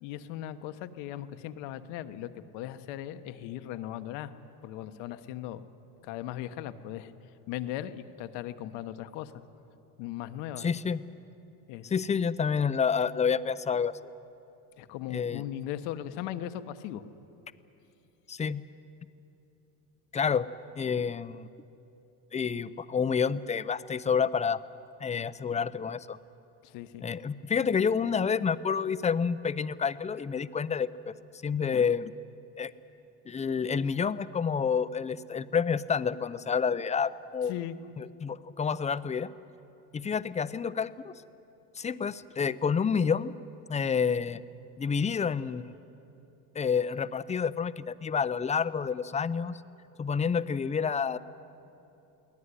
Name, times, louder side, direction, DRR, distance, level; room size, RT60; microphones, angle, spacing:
voice 1, 0.0-4.3 4.6-5.6 6.0-7.1 7.5-9.3 10.0-10.7 11.7-11.9 14.8-17.1 26.6-27.0 37.5-37.8, left 12 dB, 75° left, 10 dB, 1.3 m, -38 dB
voice 2, 10.6-11.0 11.8-13.9 15.1-15.4 18.3-18.6 20.1-20.5 20.8-21.5 22.3-24.6 25.0-26.2 27.0-31.1 31.4-32.1 32.6-32.7 33.3-37.5 38.0-39.3 39.9-41.1 41.8-43.3 43.7-44.4 44.8-45.7 46.5-49.6 50.0-51.2, left 6 dB, 15° left, 15 dB, 0.5 m, -29 dB
23.5 x 17.5 x 9.8 m, 2.9 s
supercardioid pair, 115°, 42 cm